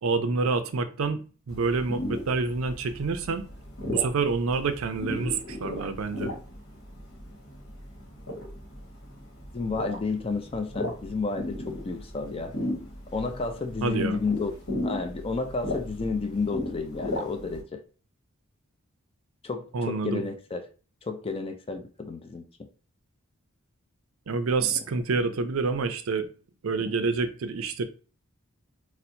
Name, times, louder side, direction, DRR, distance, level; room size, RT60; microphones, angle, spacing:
voice 1, 0.0-3.4 3.9-6.3 13.8-14.2 19.7-20.2 24.3-26.3 26.6-27.8, right 4 dB, 70° right, 0.4 m, -27 dB
sound 1, 1.5-17.6, left 1 dB, 65° left, 1.1 m, -36 dB
voice 2, 9.5-12.5 13.1-14.5 14.8-17.8 19.4-20.6 21.0-22.5 24.6-24.8, left 4 dB, 25° left, 0.4 m, -31 dB
4.2 x 2.1 x 2.6 m
head